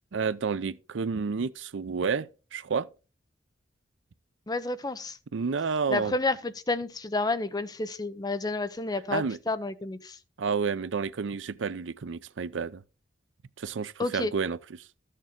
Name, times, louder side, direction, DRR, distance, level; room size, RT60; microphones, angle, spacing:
voice 1, 0.1-2.9 5.3-6.1 9.1-9.4 10.4-12.8 13.6-14.9, right 5 dB, 85° right, 0.5 m, -30 dB
voice 2, 4.5-5.2 5.9-10.2 14.0-14.3, left 3 dB, 20° left, 0.7 m, -30 dB
13.5 x 6.6 x 3.7 m
head